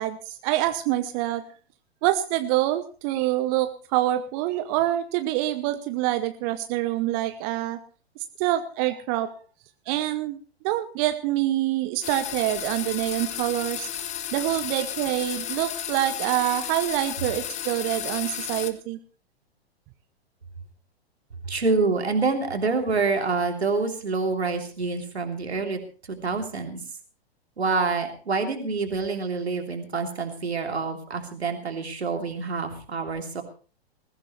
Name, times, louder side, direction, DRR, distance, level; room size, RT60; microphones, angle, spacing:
voice 1, 0.0-1.5 2.0-7.8 8.4-9.3 9.9-10.4 10.6-13.9 14.3-19.0, right 14 dB, 35° right, 10 dB, 0.9 m, -26 dB
sound 1, 12.0-18.7, left 10 dB, 20° left, 1.1 m, -33 dB
voice 2, 21.5-25.8 26.1-26.8 27.6-33.4, right 4 dB, 80° right, 4 dB, 3.1 m, -27 dB
21.0 x 15.5 x 3.2 m, 0.37 s
figure-of-eight pair, 105°, 32 cm